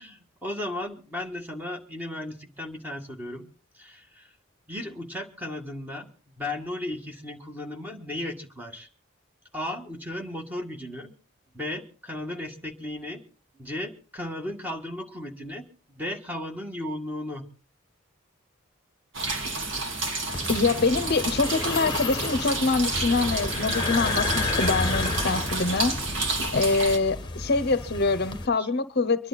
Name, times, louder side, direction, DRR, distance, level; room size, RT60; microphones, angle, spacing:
voice 1, 0.0-3.5 3.7-4.4 4.7-8.9 9.5-11.1 11.5-13.2 13.5-17.5 28.6-28.7, left 1 dB, 10° right, 1.8 m, -35 dB
sound 1, 19.1-27.0, right 3 dB, 65° right, 2.4 m, -30 dB
sound 2, 20.3-28.5, left 3 dB, 20° left, 1.2 m, -31 dB
voice 2, 20.5-26.0 26.5-29.3, left 3 dB, 50° left, 0.8 m, -25 dB
24.0 x 11.0 x 4.1 m
head